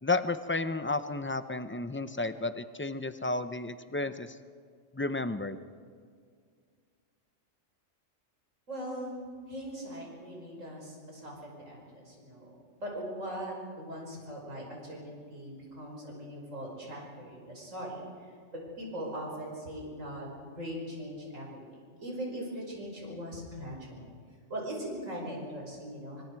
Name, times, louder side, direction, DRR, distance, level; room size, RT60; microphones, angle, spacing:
voice 1, 0.0-4.3 4.9-5.6, left 3 dB, 15° left, 11 dB, 0.4 m, -32 dB
voice 2, 8.7-9.2 9.5-12.5 12.8-24.1 24.5-26.2, equal, 75° right, -2 dB, 6.0 m, -40 dB
25.5 x 24.5 x 4.7 m, 2.1 s
omnidirectional pair, 1.3 m